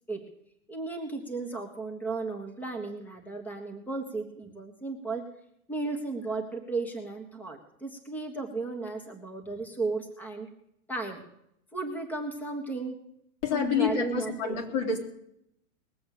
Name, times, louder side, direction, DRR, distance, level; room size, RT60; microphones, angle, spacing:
voice 1, 0.7-5.2 5.7-10.5 10.9-11.2 11.7-13.0 13.5-14.3, right 3 dB, 5° left, 5 dB, 1.5 m, -34 dB
voice 2, 13.4-15.0, left 6 dB, 40° left, 4 dB, 3.2 m, -28 dB
20.5 x 7.9 x 6.7 m, 0.75 s
hypercardioid pair, 150°, 41 cm